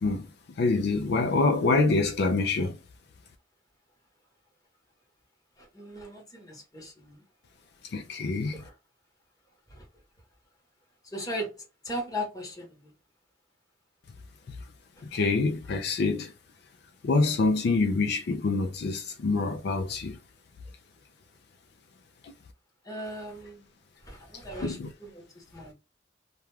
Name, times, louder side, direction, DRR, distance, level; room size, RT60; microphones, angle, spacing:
voice 1, 0.0-2.8 7.8-8.6 14.5-14.7 15.0-16.3 17.0-20.2 22.2-22.3 24.3-24.9, left 3 dB, 60° left, 0.3 m, -26 dB
voice 2, 5.6-7.2 8.5-8.7 9.7-9.8 11.1-12.9 15.1-15.2 22.8-23.7 24.0-25.7, equal, 20° left, 0.9 m, -38 dB
2.3 x 2.2 x 3.1 m
head